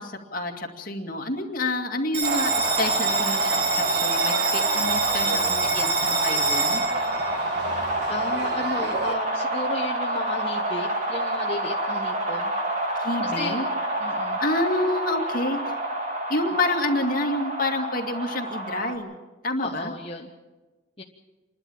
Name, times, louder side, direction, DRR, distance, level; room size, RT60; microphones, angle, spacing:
voice 1, 0.0-6.8 13.0-13.7 14.4-15.7 16.3-19.1 19.4-19.9, left 2 dB, 50° left, 2 dB, 2.3 m, -28 dB
Bell, 2.1-9.1, right 5 dB, 60° right, 1.4 m, -27 dB
sound 1, 2.2-19.0, right 1 dB, 40° right, 2.8 m, -28 dB
voice 2, 8.1-12.5 13.2-13.6 14.0-14.4 19.6-20.3 21.0-21.1, left 2 dB, 30° left, -1 dB, 1.2 m, -34 dB
28.0 x 12.0 x 8.7 m, 1.2 s
head